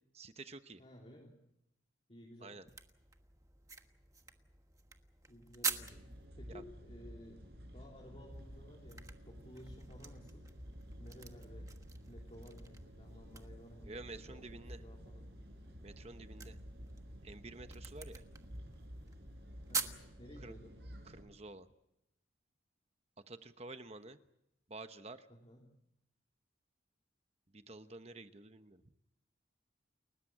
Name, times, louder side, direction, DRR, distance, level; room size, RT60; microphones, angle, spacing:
voice 1, 0.1-0.8 2.4-2.6 6.5-6.6 13.8-14.8 15.8-16.6 17.2-18.2 20.4-20.5 21.0-21.7 23.3-24.2 24.7-25.3 27.5-28.9, right 2 dB, 35° right, 10 dB, 1.0 m, -50 dB
voice 2, 0.8-1.3 2.1-2.6 5.3-6.1 6.4-10.5 11.0-11.7 12.1-15.3 19.7-20.8 25.3-25.6, equal, 30° left, -2 dB, 3.5 m, -55 dB
sound 1, 2.7-6.3 8.3-20.0, right 5 dB, 15° right, 1.3 m, -46 dB
sound 2, 5.7-21.2, equal, 55° right, 6.4 m, -52 dB
30.0 x 14.5 x 8.6 m, 0.83 s
head